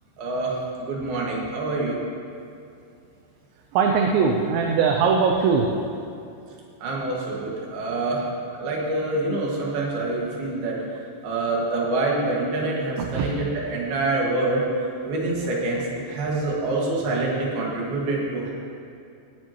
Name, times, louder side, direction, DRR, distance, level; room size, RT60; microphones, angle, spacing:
voice 1, 0.2-2.0 6.8-8.2 8.5-10.8 11.2-14.6 15.0-18.5, right 2 dB, 60° right, -3 dB, 3.5 m, -26 dB
voice 2, 3.7-5.7 13.0-13.3, right 5 dB, 80° right, 1 dB, 2.8 m, -20 dB
19.0 x 10.0 x 3.0 m, 2.6 s
omnidirectional pair, 5.5 m